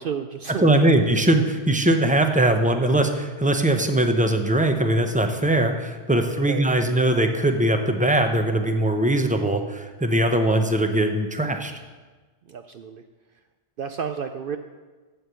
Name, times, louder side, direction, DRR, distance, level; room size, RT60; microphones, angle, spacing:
voice 1, 0.0-1.0 6.4-6.7 12.5-13.0 13.8-14.6, right 7 dB, 60° right, 7 dB, 0.6 m, -31 dB
voice 2, 0.6-11.7, right 1 dB, 10° right, 5 dB, 0.5 m, -21 dB
8.0 x 7.7 x 6.8 m, 1.3 s
omnidirectional pair, 1.2 m